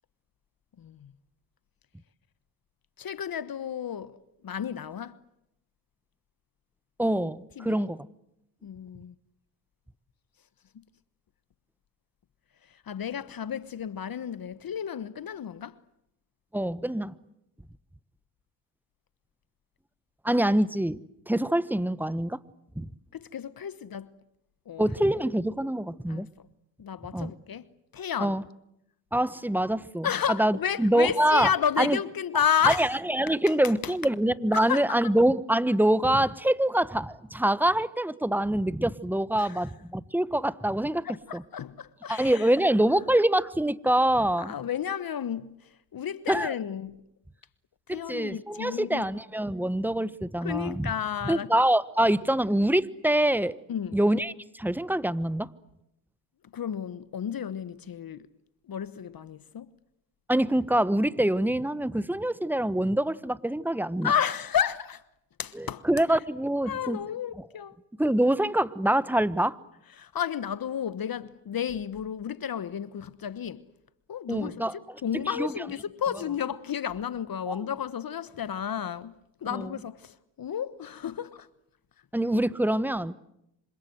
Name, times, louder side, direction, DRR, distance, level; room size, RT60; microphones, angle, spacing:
voice 1, 0.8-1.1 3.0-4.2 4.4-5.2 7.6-7.9 8.6-9.1 12.7-15.8 23.1-24.1 24.7-24.9 26.1-26.2 26.8-27.7 27.9-28.4 30.0-33.0 33.8-33.9 34.5-34.9 39.4-39.6 41.0-42.5 44.4-47.0 47.9-49.0 50.4-51.5 53.7-54.0 56.5-58.3 58.7-59.7 64.0-65.0 65.4-66.2 66.6-67.8 70.0-73.7 74.1-79.1 79.4-81.5, left 8 dB, 45° left, 1.2 m, -32 dB
voice 2, 7.0-8.1 16.5-17.1 20.2-21.0 21.3-22.4 22.8-22.9 24.8-26.3 27.1-27.3 28.2-28.4 29.1-31.5 31.8-32.0 32.6-41.0 41.3-41.4 42.1-44.5 46.3-46.5 47.9-50.9 51.2-53.6 53.9-55.5 60.3-64.1 65.5-67.0 68.0-69.6 74.3-74.7 75.4-75.5 77.5-77.6 79.5-79.7 82.1-83.1, right 1 dB, 5° right, 1.1 m, -25 dB
26.5 x 26.0 x 7.9 m
supercardioid pair, 55°, 47 cm